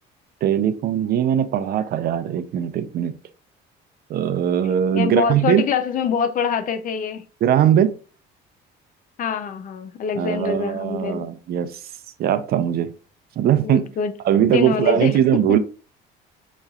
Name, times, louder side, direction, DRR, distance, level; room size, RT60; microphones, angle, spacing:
voice 1, 0.4-3.1 4.1-5.6 7.4-7.9 10.2-11.8 12.2-12.9 13.4-13.9 14.2-15.6, right 10 dB, 55° right, 0.5 m, -20 dB
voice 2, 4.9-7.2 9.2-11.3 13.6-14.1 14.5-15.1 15.5-15.6, left 6 dB, 45° left, 0.5 m, -24 dB
6.5 x 3.1 x 2.4 m
cardioid pair, 120°, 19 cm